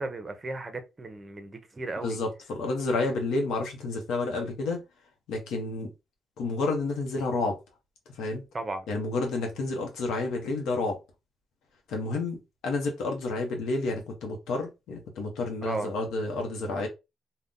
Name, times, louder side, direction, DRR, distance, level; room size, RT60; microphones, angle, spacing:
voice 1, 0.0-2.2 8.5-8.9 15.6-15.9, right 2 dB, 25° right, 0.6 m, -35 dB
voice 2, 2.0-4.8 5.3-5.9 6.4-7.6 8.2-8.4 8.9-11.0 11.9-12.4 12.6-16.9, left 3 dB, 80° left, 0.7 m, -30 dB
2.5 x 2.1 x 3.6 m
cardioid pair, 90°, 0 cm